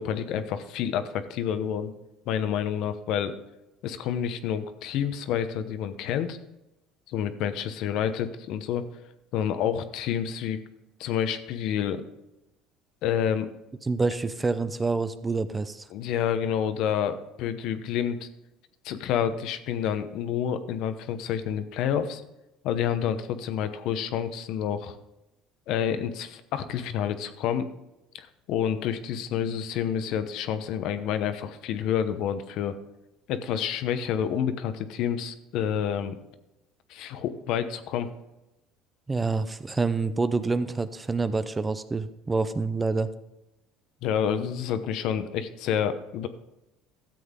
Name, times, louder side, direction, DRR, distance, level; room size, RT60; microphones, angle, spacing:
voice 1, 0.0-1.9 2.3-3.4 3.8-6.4 7.1-8.8 9.3-10.6 11.0-12.0 13.0-13.5 15.9-18.3 18.8-22.2 22.6-25.0 25.7-27.7 28.1-32.8 33.3-36.2 36.9-38.1 44.0-46.3, left 9 dB, 65° left, 10 dB, 0.8 m, -28 dB
voice 2, 13.8-15.8 39.1-43.1, right 3 dB, 15° right, 12 dB, 0.6 m, -27 dB
13.0 x 7.8 x 3.7 m, 0.93 s
cardioid pair, 115°, 0 cm